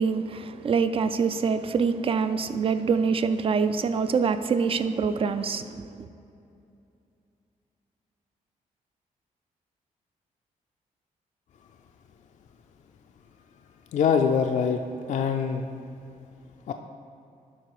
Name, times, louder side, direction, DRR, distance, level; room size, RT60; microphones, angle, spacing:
voice 1, 0.0-6.1, right 5 dB, 40° right, 11 dB, 0.4 m, -25 dB
voice 2, 13.9-14.8 15.1-15.7 16.7-16.8, left 6 dB, 55° left, 5 dB, 0.4 m, -23 dB
11.5 x 3.8 x 4.7 m, 2.6 s
cardioid pair, 120°, 14 cm